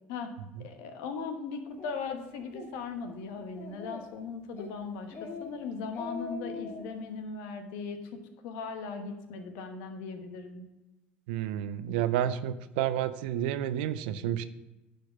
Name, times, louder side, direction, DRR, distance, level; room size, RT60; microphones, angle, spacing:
voice 1, 0.6-10.7, left 4 dB, 75° left, 6 dB, 1.2 m, -38 dB
Speech, 1.8-1.9 2.4-2.7 3.1-3.2 3.5-4.2 4.6-4.8 5.1-5.5 5.8-6.9, left 5 dB, 55° left, 1.6 m, -41 dB
voice 2, 11.3-14.4, right 11 dB, 80° right, 13 dB, 0.5 m, -30 dB
10.0 x 4.6 x 5.7 m, 1.0 s
hypercardioid pair, 65°, 5 cm